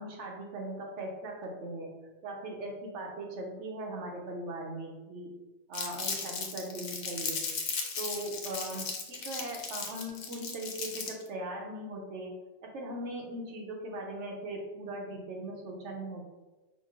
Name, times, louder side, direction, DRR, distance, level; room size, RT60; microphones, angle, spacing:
voice 1, 0.0-5.3 5.7-7.5 8.0-12.4 12.6-16.3, right 1 dB, 85° right, 0 dB, 1.1 m, -39 dB
Crumpling crinkling, 5.7-11.3, left 5 dB, 80° left, 1.0 m, -36 dB
5.0 x 2.0 x 3.6 m, 1.2 s
omnidirectional pair, 1.2 m